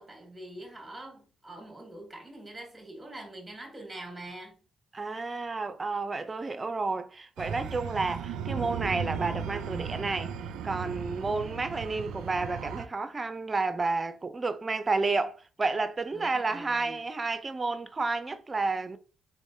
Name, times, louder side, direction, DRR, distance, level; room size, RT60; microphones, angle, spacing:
voice 1, 0.0-4.5 16.1-17.0, right 1 dB, 10° right, 1.5 m, -44 dB
voice 2, 4.9-10.3 10.6-19.0, right 3 dB, 25° right, 0.5 m, -31 dB
sound 1, 7.4-12.9, right 7 dB, 85° right, 0.3 m, -36 dB
3.6 x 3.2 x 2.7 m
cardioid pair, 90°, 0 cm